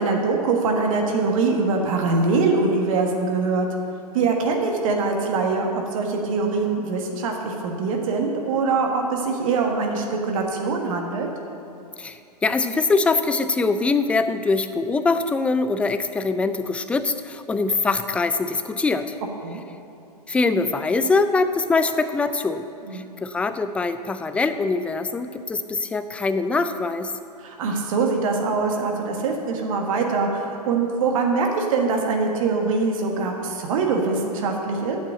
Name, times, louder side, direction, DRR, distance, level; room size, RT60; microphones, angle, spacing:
voice 1, 0.0-3.7 4.1-11.3 19.4-19.6 22.9-23.0 27.4-35.0, right 4 dB, 55° right, 1 dB, 1.5 m, -23 dB
voice 2, 12.0-19.1 20.3-22.6 22.9-27.1, left 3 dB, 5° left, 10 dB, 0.3 m, -23 dB
8.6 x 7.4 x 8.6 m, 2.6 s
figure-of-eight pair, 105°, 21 cm